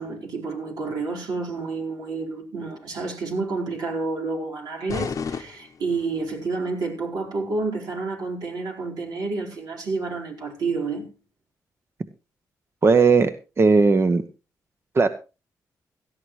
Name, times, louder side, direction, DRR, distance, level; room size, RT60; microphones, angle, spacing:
voice 1, 0.0-11.1, right 3 dB, 80° right, 4.4 m, -29 dB
sound 1, 4.9-6.4, left 6 dB, 55° left, 0.9 m, -32 dB
voice 2, 12.8-13.3 13.6-14.2 14.9-15.1, right 4 dB, 40° right, 0.9 m, -16 dB
17.5 x 13.0 x 3.1 m
cardioid pair, 75°, 7 cm